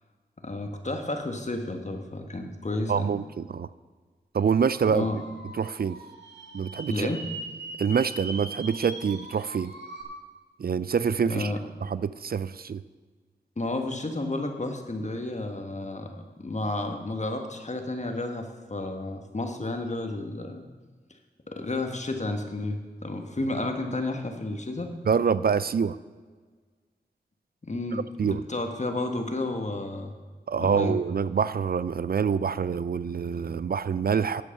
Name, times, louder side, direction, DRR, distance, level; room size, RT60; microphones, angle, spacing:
voice 1, 0.4-3.1 4.9-5.2 6.9-7.2 11.3-11.6 13.6-20.6 21.5-24.9 27.6-30.1 30.6-30.9, left 2 dB, 40° left, 5 dB, 1.5 m, -31 dB
voice 2, 2.9-3.7 4.3-5.1 5.6-6.0 6.5-7.1 7.8-9.7 10.6-11.5 11.8-12.8 25.1-26.0 27.9-28.4 30.5-34.4, right 6 dB, 60° right, 16 dB, 0.4 m, -26 dB
sound 1, 4.4-10.0, right 2 dB, 85° right, 1.8 m, -41 dB
9.5 x 8.4 x 6.6 m, 1.4 s
wide cardioid pair, 60°, 18 cm